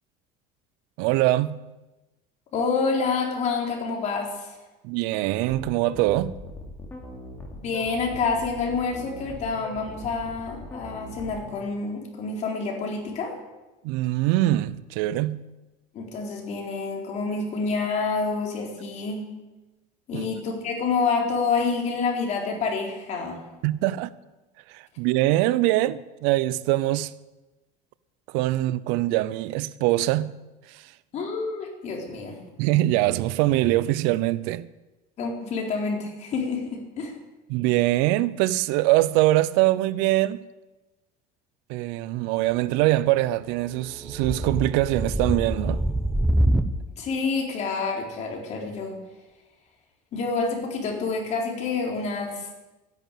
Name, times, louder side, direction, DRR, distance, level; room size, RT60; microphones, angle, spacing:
voice 1, 1.0-1.7 4.8-6.3 13.8-15.5 20.1-20.3 23.6-24.1 24.7-27.1 28.3-30.4 30.7-30.9 32.6-34.7 37.5-40.4 41.7-45.8, right 16 dB, 80° right, 0.7 m, -23 dB
voice 2, 2.5-4.6 7.6-13.3 15.9-19.2 20.1-23.4 31.1-32.4 35.2-37.1 47.0-49.0 50.1-52.5, left 4 dB, 40° left, 3.9 m, -28 dB
sound 1, 5.5-11.5, left 1 dB, 10° left, 2.9 m, -40 dB
sound 2, 43.8-46.7, right 1 dB, 5° right, 0.8 m, -25 dB
13.5 x 11.0 x 9.2 m
cardioid pair, 155°, 18 cm